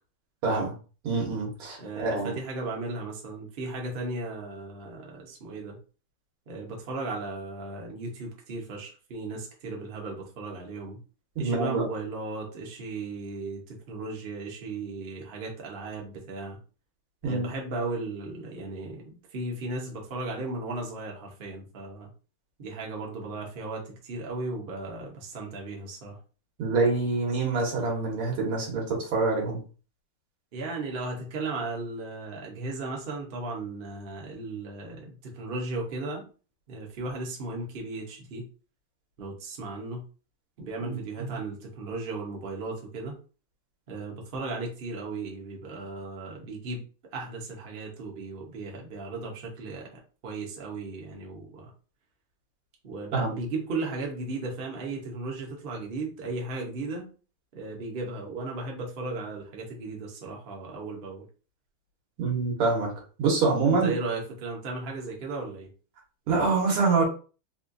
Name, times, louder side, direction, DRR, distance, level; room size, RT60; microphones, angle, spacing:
voice 1, 0.4-0.7 1.0-2.4 11.4-11.9 17.2-17.5 26.6-29.6 40.8-41.4 53.1-53.4 62.2-62.9 63.2-63.9 66.3-67.0, right 3 dB, 80° right, -1 dB, 2.0 m, -26 dB
voice 2, 1.8-5.8 6.5-11.0 11.4-16.6 17.2-22.1 22.6-26.2 30.5-36.2 36.7-38.5 39.2-40.0 40.6-43.2 43.9-46.8 47.1-51.7 52.8-57.1 57.5-61.2 63.6-65.7, right 3 dB, 55° right, 0 dB, 0.6 m, -36 dB
4.2 x 2.3 x 2.6 m, 0.36 s
omnidirectional pair, 2.3 m